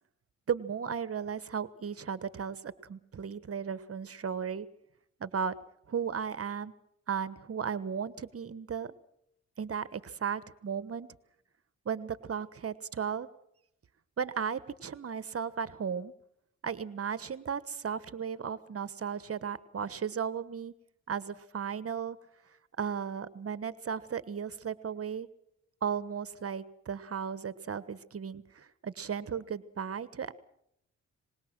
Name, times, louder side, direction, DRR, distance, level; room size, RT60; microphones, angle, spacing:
voice 1, 0.5-4.7 5.2-5.5 5.9-6.7 7.1-8.9 9.6-11.1 11.8-13.3 14.2-16.1 16.6-20.7 21.1-22.2 22.8-25.3 25.8-30.3, right 7 dB, 50° right, 14 dB, 1.3 m, -35 dB
25.0 x 20.5 x 6.1 m, 0.76 s
cardioid pair, 80°, 29 cm